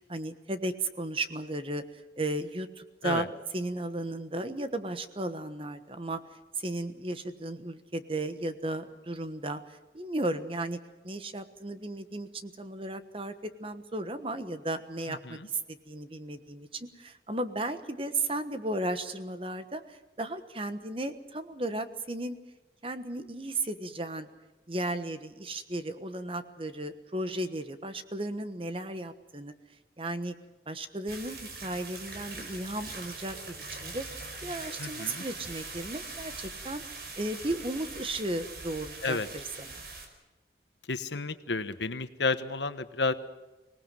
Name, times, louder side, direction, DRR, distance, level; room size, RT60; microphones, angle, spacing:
voice 1, 0.0-1.8 2.2-3.3 3.5-10.8 11.0-22.4 22.8-24.3 24.7-29.5 30.0-30.3 30.7-34.0 34.4-36.8 37.2-39.8, right 2 dB, 30° right, 10 dB, 1.3 m, -35 dB
sound 1, 31.1-40.1, right 3 dB, 55° right, 4.7 m, -42 dB
voice 2, 34.8-35.2 39.0-39.3 40.9-43.1, left 3 dB, 80° left, 11 dB, 1.2 m, -31 dB
25.0 x 18.5 x 7.7 m, 1.1 s
head